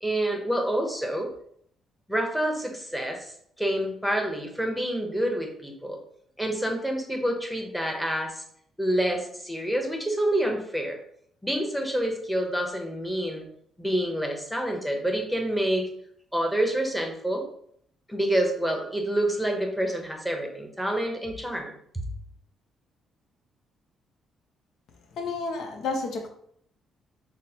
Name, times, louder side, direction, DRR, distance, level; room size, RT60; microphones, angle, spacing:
voice 1, 0.0-1.3 2.1-3.3 3.6-6.0 6.4-8.4 8.8-11.0 11.4-13.4 13.8-15.9 16.3-17.4 18.1-22.1, right 1 dB, ahead, 2 dB, 0.8 m, -27 dB
voice 2, 25.2-26.3, left 3 dB, 75° left, 4 dB, 0.6 m, -30 dB
6.1 x 2.1 x 2.8 m, 0.66 s
cardioid pair, 90°, 0 cm